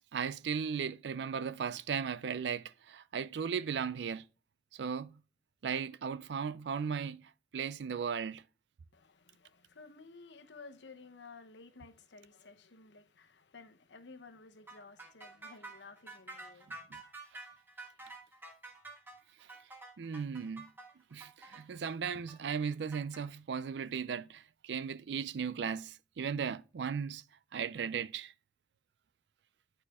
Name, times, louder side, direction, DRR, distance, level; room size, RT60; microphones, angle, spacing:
voice 1, 0.1-4.3 4.7-5.2 5.6-8.4 20.0-20.7 21.1-27.2 27.5-28.3, right 6 dB, 80° right, 0.4 m, -36 dB
voice 2, 8.9-17.0, left 4 dB, 85° left, 1.0 m, -54 dB
sound 1, 14.7-23.2, right 2 dB, 10° right, 1.2 m, -49 dB
10.0 x 4.4 x 3.5 m
head